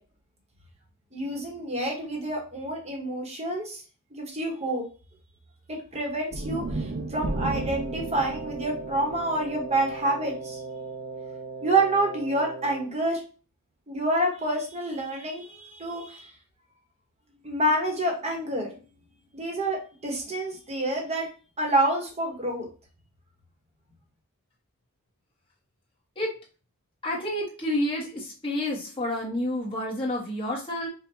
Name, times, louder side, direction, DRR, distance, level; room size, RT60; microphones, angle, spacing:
voice 1, 1.1-3.8 4.1-4.8 5.7-10.6 11.6-13.2 13.9-16.3 17.4-18.8 19.3-21.3 21.6-22.7, right 1 dB, 30° right, 0 dB, 1.2 m, -28 dB
sound 1, 6.3-10.6, right 2 dB, 45° right, 0.5 m, -34 dB
Wind instrument woodwind instrument, 7.2-12.9, right 4 dB, 90° right, 1.0 m, -38 dB
voice 2, 27.0-30.9, left 1 dB, 25° left, -4 dB, 1.3 m, -29 dB
5.3 x 2.5 x 2.8 m, 0.36 s
head